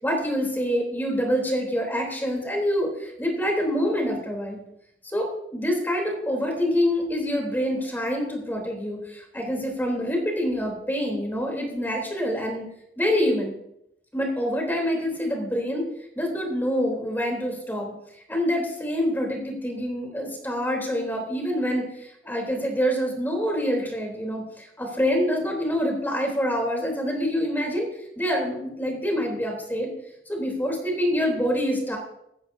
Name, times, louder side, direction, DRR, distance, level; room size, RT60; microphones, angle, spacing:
voice 1, 0.0-4.6 5.0-5.3 5.5-12.6 13.0-13.5 14.1-15.8 16.2-17.9 18.3-27.9 28.2-29.9 30.3-32.0, equal, 10° left, 0 dB, 3.5 m, -26 dB
14.5 x 14.5 x 2.8 m, 0.79 s
head